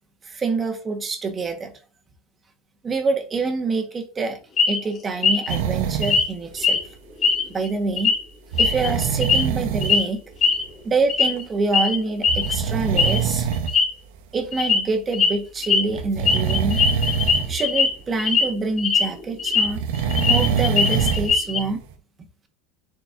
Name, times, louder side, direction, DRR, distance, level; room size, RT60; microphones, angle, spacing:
voice 1, 0.2-1.7 2.8-4.4 4.7-6.8 7.5-8.1 8.6-10.2 10.8-13.5 14.3-16.8 17.5-19.8 20.3-21.8, right 3 dB, 25° right, 1.5 m, -26 dB
sound 1, 4.6-4.8 5.2-5.5 6.0-6.3 6.6-6.8 7.2-7.7 8.0-8.2 8.6-9.5 9.8-10.0 10.4-10.6 11.1-11.4 11.7-11.9 12.2-12.5 13.0-13.2 13.5-13.9 14.5-14.8 15.1-15.3 15.6-15.8 16.2-17.9 18.2-18.4 18.8-19.7 20.0-21.6, left 5 dB, 35° left, 2.5 m, -20 dB
sound 2, 5.5-6.2 8.5-10.0 11.4-11.5 12.3-13.7 14.4-14.5 15.9-17.6 17.9-18.0 19.6-21.4 21.9-22.0, right 7 dB, 80° right, 1.2 m, -24 dB
11.0 x 4.5 x 2.7 m
supercardioid pair, 125°, 0 cm